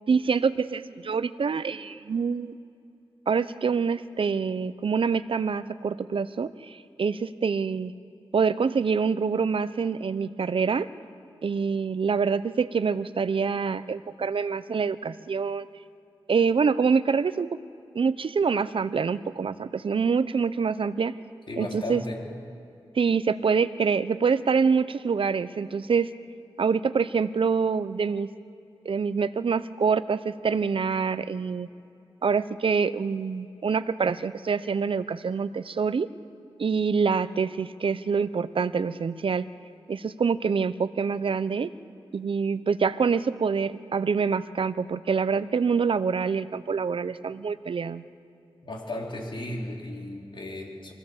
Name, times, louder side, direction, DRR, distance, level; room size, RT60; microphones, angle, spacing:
voice 1, 0.1-2.5 3.3-7.9 8.3-10.9 11.4-15.7 16.3-17.6 17.9-21.2 21.6-22.0 23.0-26.1 26.6-28.3 28.8-31.7 32.2-36.1 36.6-39.5 39.9-41.7 42.1-48.0, right 5 dB, 65° right, 14 dB, 0.7 m, -26 dB
voice 2, 21.5-22.2 48.6-50.9, left 1 dB, 55° left, -1 dB, 4.1 m, -35 dB
23.5 x 16.5 x 7.2 m, 2.6 s
cardioid pair, 65°, 10 cm